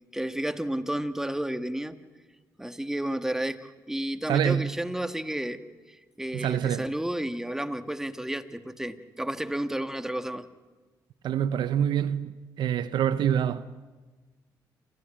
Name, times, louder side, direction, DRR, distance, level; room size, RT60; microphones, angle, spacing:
voice 1, 0.1-2.0 2.6-5.6 5.9-10.5, right 1 dB, 5° right, 1.5 m, -32 dB
voice 2, 4.3-4.8 6.3-6.9 11.2-13.6, right 9 dB, 80° right, 0.7 m, -26 dB
28.5 x 14.5 x 8.8 m
cardioid pair, 70°, 8 cm